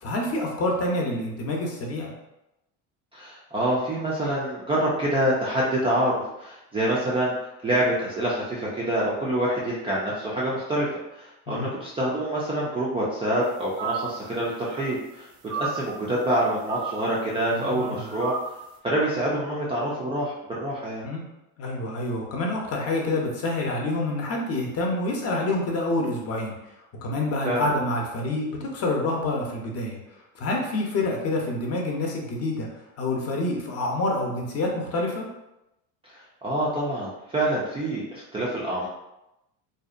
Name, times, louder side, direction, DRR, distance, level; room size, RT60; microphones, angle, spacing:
voice 1, 0.0-2.1 11.5-11.7 17.5-18.1 21.0-21.2 21.6-26.5 27.0-30.0 30.3-32.7 33.0-35.3, left 2 dB, 40° left, 0 dB, 0.6 m, -27 dB
voice 2, 3.1-7.3 7.6-10.9 11.1-15.3 15.5-18.3 18.8-21.0 27.4-27.7 36.0-38.9, right 1 dB, 15° right, -6 dB, 0.3 m, -26 dB
sound 1, 13.8-14.3 14.6-15.1 15.5-15.8 16.7-17.2 17.7-18.6, right 6 dB, 80° right, 0.6 m, -33 dB
2.6 x 2.1 x 2.4 m, 0.90 s
supercardioid pair, 120°, 38 cm